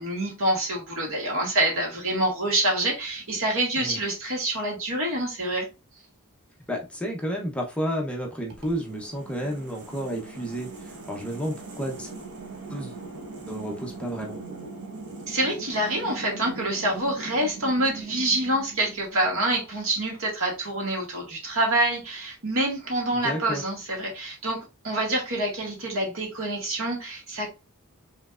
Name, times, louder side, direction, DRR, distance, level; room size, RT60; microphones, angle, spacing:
voice 1, 0.0-5.7 15.3-27.5, right 1 dB, 65° right, 1.9 m, -26 dB
voice 2, 6.7-12.1 12.7-13.0 13.5-14.4 23.2-23.6, equal, 5° left, 0.8 m, -31 dB
sound 1, 8.5-19.6, right 3 dB, 85° right, 1.1 m, -41 dB
5.7 x 3.2 x 2.5 m
head